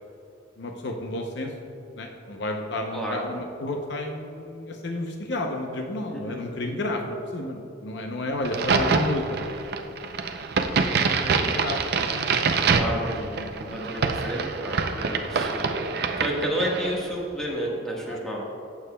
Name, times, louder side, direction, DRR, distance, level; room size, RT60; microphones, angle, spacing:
voice 1, 0.6-1.5 2.0-9.5 11.2-11.8 12.1-12.3 13.1-13.9 18.1-18.2, left 2 dB, 60° left, 3 dB, 0.7 m, -32 dB
voice 2, 2.9-3.3 6.1-6.4 11.2-11.5 12.6-13.2 13.6-15.8 16.2-18.4, equal, 5° left, -4 dB, 1.4 m, -31 dB
Crack, 8.4-17.0, right 4 dB, 55° right, 0.5 m, -25 dB
15.0 x 7.2 x 2.3 m, 2.7 s
head